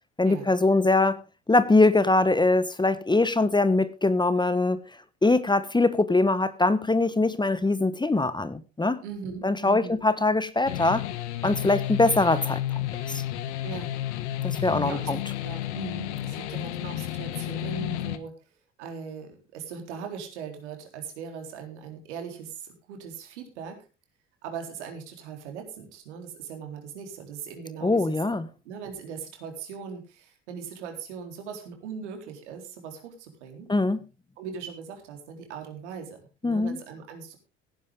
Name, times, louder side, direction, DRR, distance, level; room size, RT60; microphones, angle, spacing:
voice 1, 0.2-1.2 1.5-4.8 5.2-9.0 9.4-11.0 11.4-12.6 13.1-13.2 14.4-15.2 27.8-28.5 33.7-34.0 36.4-36.8, left 2 dB, 10° left, 14 dB, 1.3 m, -22 dB
voice 2, 9.0-10.0 13.6-13.9 14.5-15.1 15.4-18.3 18.8-23.8 24.4-28.2 28.6-33.7 34.4-36.2 36.4-37.4, right 6 dB, 75° right, 4 dB, 4.0 m, -39 dB
sound 1, 10.6-18.2, left 12 dB, 75° left, 1.4 m, -31 dB
17.0 x 10.5 x 3.8 m, 0.32 s
hypercardioid pair, 60°, 35 cm